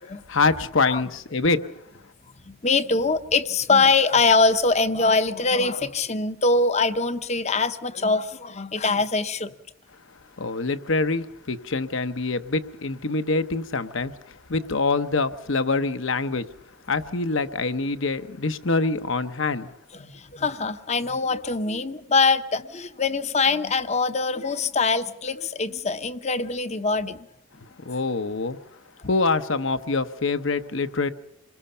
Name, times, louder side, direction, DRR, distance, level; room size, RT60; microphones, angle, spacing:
voice 1, 0.3-1.8 10.4-16.5 16.9-19.7 27.8-28.6 29.0-31.1, left 3 dB, 60° left, 0.9 m, -25 dB
voice 2, 2.5-9.5 19.9-27.3, left 3 dB, 30° left, 0.8 m, -23 dB
27.5 x 21.0 x 5.7 m
head